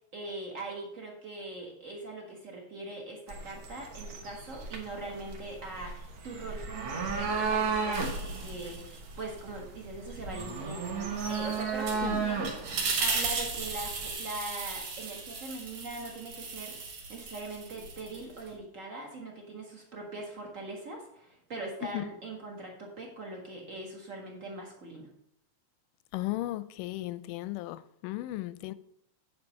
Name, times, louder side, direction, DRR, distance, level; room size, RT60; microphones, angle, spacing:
voice 1, 0.1-12.5 13.0-25.1, right 2 dB, 40° right, 1.2 m, -41 dB
sound 1, 3.3-14.1, right 5 dB, 60° right, 1.8 m, -35 dB
sound 2, 7.9-9.5 9.8-18.5, right 4 dB, 85° right, 3.5 m, -36 dB
voice 2, 26.1-28.7, left 17 dB, 90° left, 2.1 m, -35 dB
9.1 x 5.3 x 5.3 m
omnidirectional pair, 3.6 m